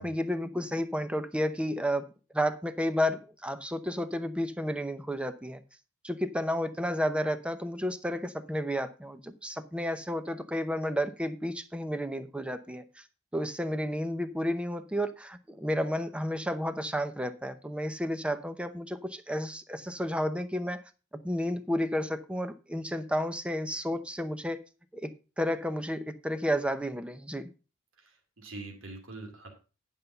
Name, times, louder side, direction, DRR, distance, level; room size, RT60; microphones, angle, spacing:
voice 1, 0.0-2.1 2.3-5.6 6.0-13.0 13.3-20.8 21.2-24.6 24.9-27.5, equal, 5° right, 0.7 m, -31 dB
voice 2, 28.0-29.5, right 3 dB, 65° right, 2.6 m, -44 dB
10.0 x 5.4 x 5.5 m
head